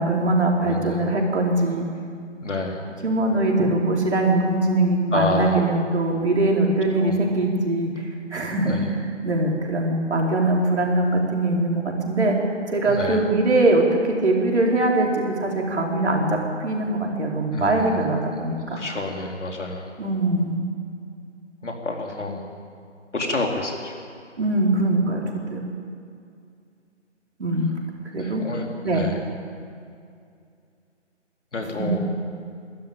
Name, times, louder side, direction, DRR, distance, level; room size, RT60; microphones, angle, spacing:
voice 1, 0.0-1.9 3.0-12.4 12.7-18.8 20.0-20.6 24.4-25.6 27.4-27.7 28.1-28.4 28.8-29.0 31.8-32.0, right 2 dB, 65° right, -1 dB, 4.5 m, -22 dB
voice 2, 0.6-1.2 2.4-2.8 5.1-5.6 7.0-7.2 8.7-8.9 12.9-13.2 17.5-18.1 18.7-19.9 21.6-22.4 23.1-23.9 28.2-29.2 31.5-32.0, left 2 dB, 70° left, 1 dB, 3.8 m, -29 dB
22.0 x 13.0 x 9.1 m, 2.4 s
figure-of-eight pair, 165°, 37 cm